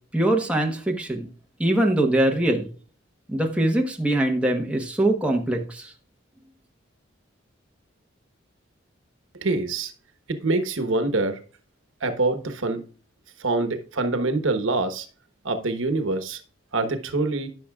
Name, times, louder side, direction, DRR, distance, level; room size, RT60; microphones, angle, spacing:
voice 1, 0.1-1.3 1.6-2.7 3.3-5.9, right 1 dB, 5° right, 1 dB, 1.1 m, -22 dB
voice 2, 9.4-9.9 10.3-11.4 12.0-12.8 13.4-15.1 15.4-16.4 16.7-17.5, right 2 dB, 80° right, 9 dB, 1.1 m, -25 dB
14.0 x 6.0 x 2.4 m, 0.39 s
head